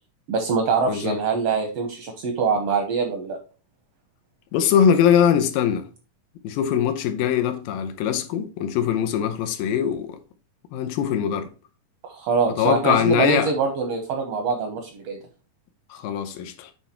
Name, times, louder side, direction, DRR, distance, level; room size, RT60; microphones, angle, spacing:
voice 1, 0.3-3.4 12.0-15.2, right 5 dB, 70° right, 1.4 m, -24 dB
voice 2, 0.9-1.2 4.5-5.9 6.4-10.2 10.7-11.5 12.6-13.5 15.9-16.7, left 8 dB, 85° left, 2.5 m, -22 dB
8.5 x 3.4 x 4.3 m
omnidirectional pair, 4.0 m